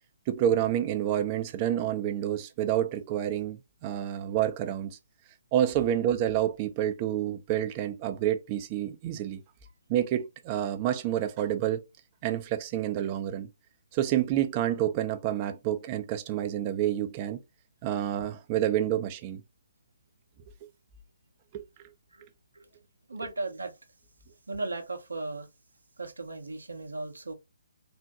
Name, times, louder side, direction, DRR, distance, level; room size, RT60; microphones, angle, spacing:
voice 1, 0.3-5.0 5.5-9.4 9.9-11.8 12.2-13.5 13.9-17.4 17.8-19.4 21.5-21.6, right 11 dB, 25° right, 0.5 m, -28 dB
voice 2, 23.1-23.7 24.5-25.5 26.0-27.3, right 2 dB, 75° right, 0.7 m, -36 dB
3.7 x 2.1 x 2.7 m
figure-of-eight pair, 140°, 0 cm